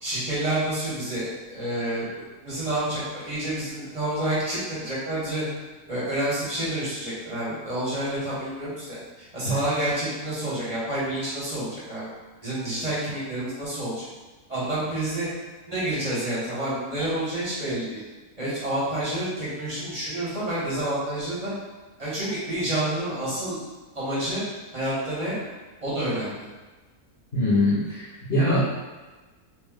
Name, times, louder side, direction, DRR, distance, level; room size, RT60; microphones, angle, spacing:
voice 1, 0.0-5.4 5.9-12.1 12.4-14.0 14.5-15.3 15.7-18.0 18.4-21.5 22.0-23.6 23.9-24.4 24.7-25.3 25.8-26.5, right 1 dB, 25° right, -10 dB, 1.1 m, -29 dB
voice 2, 27.3-28.0 28.3-28.7, left 1 dB, 40° left, -11 dB, 1.1 m, -22 dB
3.2 x 2.5 x 3.6 m, 1.2 s
omnidirectional pair, 1.7 m